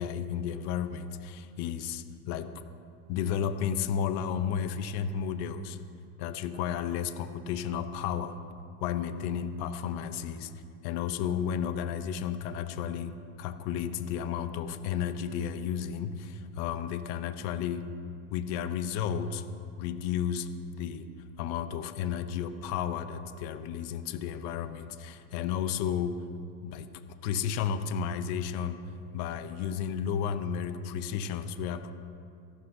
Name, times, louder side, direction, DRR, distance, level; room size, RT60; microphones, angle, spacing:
voice 1, 0.0-2.5 3.1-5.8 6.2-8.4 8.8-10.5 10.8-17.9 18.3-19.4 19.8-20.5 20.8-21.1 21.4-26.2 26.6-26.9 27.2-28.8 29.1-31.9, left 8 dB, 35° left, 11 dB, 0.5 m, -32 dB
26.0 x 11.5 x 2.6 m, 2.5 s
supercardioid pair, 150°, 48 cm